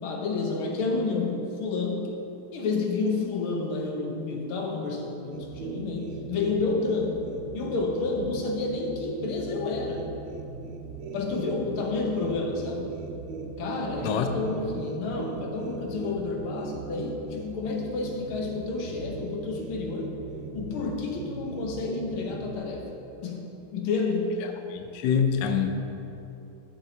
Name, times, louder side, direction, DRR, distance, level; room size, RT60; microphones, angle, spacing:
voice 1, 0.0-2.1 2.5-10.2 11.1-12.9 13.6-20.2 20.5-22.9 23.2-24.4, left 3 dB, 90° left, 1 dB, 1.9 m, -30 dB
sound 1, 5.3-22.6, right 5 dB, 75° right, 1.5 m, -39 dB
voice 2, 24.7-25.7, left 7 dB, 70° left, 6 dB, 1.1 m, -25 dB
13.5 x 7.5 x 2.8 m, 2.8 s
omnidirectional pair, 2.3 m